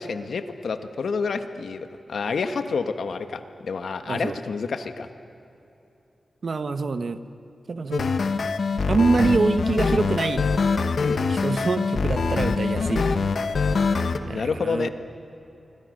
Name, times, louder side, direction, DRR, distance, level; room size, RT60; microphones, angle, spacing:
voice 1, 0.0-5.1 11.0-11.2 14.3-14.9, left 5 dB, 85° left, 8 dB, 1.4 m, -29 dB
voice 2, 6.4-7.2 7.7-8.1 8.9-10.4 11.3-13.1 14.2-14.9, right 4 dB, 50° right, 10 dB, 1.0 m, -25 dB
sound 1, 7.9-14.2, left 4 dB, 65° left, 1.1 m, -24 dB
26.5 x 25.0 x 6.6 m, 2.9 s
wide cardioid pair, 170°, 0 cm